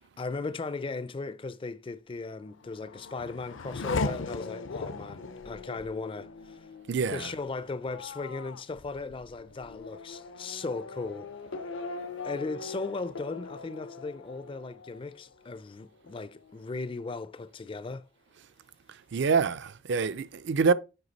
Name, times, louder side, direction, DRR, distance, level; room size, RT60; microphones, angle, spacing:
voice 1, 0.2-6.7 7.1-11.6 12.2-18.0, left 3 dB, 25° left, 0.4 m, -37 dB
Race car auto racing / Accelerating revving vroom, 2.4-15.7 16.1-16.8, left 3 dB, 70° left, 0.6 m, -39 dB
voice 2, 6.9-7.3 19.1-20.7, right 5 dB, 60° right, 0.4 m, -26 dB
8.0 x 4.9 x 4.0 m
head